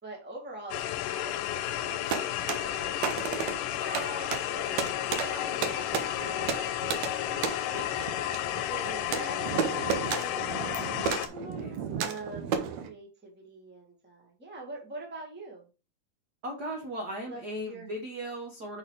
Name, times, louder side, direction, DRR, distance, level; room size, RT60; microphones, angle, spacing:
voice 1, 0.0-5.0 5.3-6.0 6.3-7.3 8.7-11.2 11.7-12.6 12.8-15.6 17.2-17.9, right 2 dB, 5° right, 0 dB, 0.9 m, -44 dB
sound 1, 0.7-11.3, left 12 dB, 90° left, 2.1 m, -32 dB
sound 2, 1.8-12.9, right 7 dB, 75° right, 1.9 m, -34 dB
voice 2, 11.3-11.8 16.4-18.8, equal, 55° right, 0 dB, 1.1 m, -37 dB
6.4 x 4.1 x 4.8 m, 0.32 s
omnidirectional pair, 3.6 m